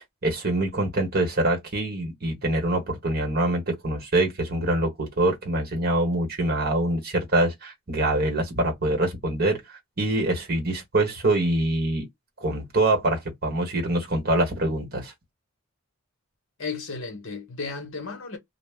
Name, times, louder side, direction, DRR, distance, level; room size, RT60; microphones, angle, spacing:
voice 1, 0.2-12.1 12.4-15.1, right 1 dB, 45° right, 1.3 m, -25 dB
voice 2, 16.6-18.4, left 4 dB, 65° left, 1.1 m, -34 dB
2.4 x 2.3 x 3.4 m
head